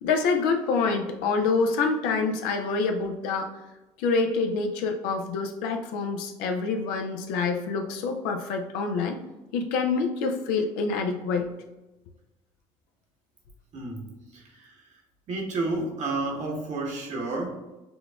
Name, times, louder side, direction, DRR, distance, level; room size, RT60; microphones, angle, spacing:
voice 1, 0.0-3.5 4.0-9.2 9.5-11.5, left 4 dB, 80° left, 5 dB, 0.5 m, -26 dB
voice 2, 13.7-14.7 15.3-17.6, right 2 dB, 55° right, 0 dB, 1.1 m, -31 dB
6.9 x 2.3 x 2.3 m, 1.1 s
hypercardioid pair, 60°, 15 cm